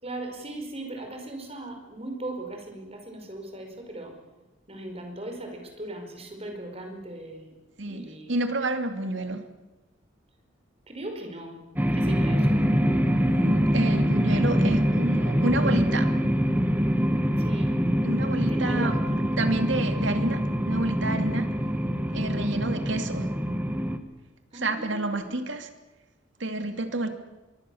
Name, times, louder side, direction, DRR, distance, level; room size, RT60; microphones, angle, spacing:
voice 1, 0.0-4.2 4.7-7.6 7.9-8.4 9.1-9.2 10.9-11.6 11.9-13.3 14.6-14.9 17.4-17.7 18.5-19.3 22.2-22.5 24.5-25.4, right 1 dB, 30° right, 3 dB, 5.2 m, -39 dB
voice 2, 7.8-9.5 13.2-16.1 18.0-19.0 19.4-21.5 22.1-23.3 24.6-25.7 26.4-27.1, right 2 dB, 70° right, 7 dB, 2.5 m, -29 dB
sound 1, 11.8-24.0, equal, 10° right, 1.5 m, -24 dB
24.5 x 23.0 x 7.2 m, 1.1 s
head